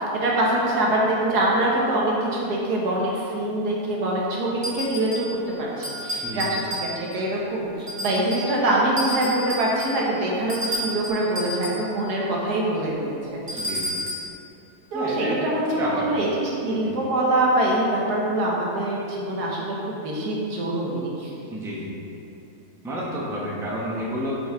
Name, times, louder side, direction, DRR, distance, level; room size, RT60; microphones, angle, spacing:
voice 1, 0.1-13.6 14.9-21.3, right 1 dB, 85° right, -4 dB, 1.6 m, -24 dB
sound 1, 4.6-5.4 5.8-7.3 7.9-8.6 9.0-11.9 13.5-14.3, equal, 25° right, 1.5 m, -31 dB
voice 2, 13.6-13.9 14.9-16.1 16.7-16.9 21.5-21.9 22.8-24.3, equal, ahead, -6 dB, 0.7 m, -30 dB
5.7 x 4.4 x 4.6 m, 2.9 s
omnidirectional pair, 1.7 m